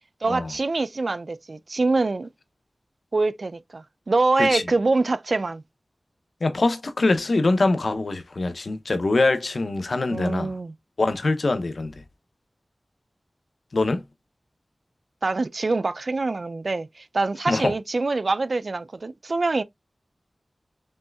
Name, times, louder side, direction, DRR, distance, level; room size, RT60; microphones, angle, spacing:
voice 1, 0.2-2.3 3.1-5.6 10.1-10.7 15.2-19.6, right 3 dB, 60° right, 0.3 m, -25 dB
voice 2, 6.4-10.5 11.0-11.9 13.7-14.0 17.5-17.7, left 2 dB, 70° left, 0.7 m, -23 dB
5.4 x 3.1 x 2.3 m
wide cardioid pair, 75°, 0 cm